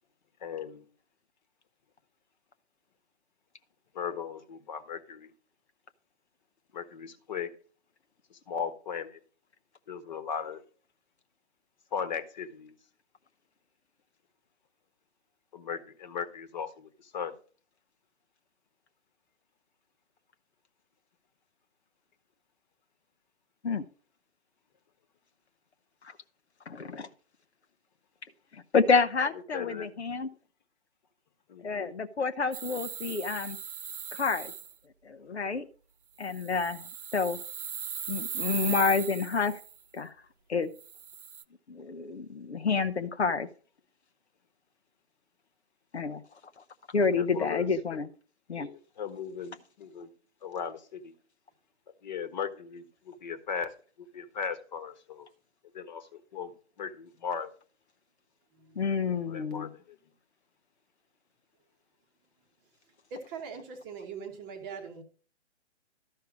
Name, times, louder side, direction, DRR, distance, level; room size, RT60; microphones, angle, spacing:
voice 1, 0.4-0.8 3.9-5.3 6.7-7.5 8.3-9.2 9.9-10.6 11.9-12.7 15.5-17.3 29.5-29.9 31.5-31.9 47.2-48.0 48.5-50.1 50.4-51.1 52.0-53.7 54.0-55.3 55.7-56.5 56.8-57.5 59.3-60.0, left 7 dB, 40° left, 11 dB, 1.4 m, -37 dB
voice 2, 26.7-27.1 28.5-30.3 31.6-33.6 34.1-34.5 35.0-35.6 36.2-37.4 38.1-39.6 39.9-40.1 40.5-40.7 41.7-43.5 45.9-46.2 46.9-48.1 48.5-48.7 58.8-59.7, left 5 dB, 65° left, 9 dB, 1.0 m, -29 dB
sound 1, 32.5-34.7 36.2-39.7 40.8-41.4, right 8 dB, 50° right, 0.5 m, -38 dB
voice 3, 58.5-59.7 63.1-65.0, right 5 dB, 15° right, 4 dB, 1.0 m, -43 dB
12.5 x 5.6 x 5.1 m, 0.40 s
figure-of-eight pair, 135°, 35 cm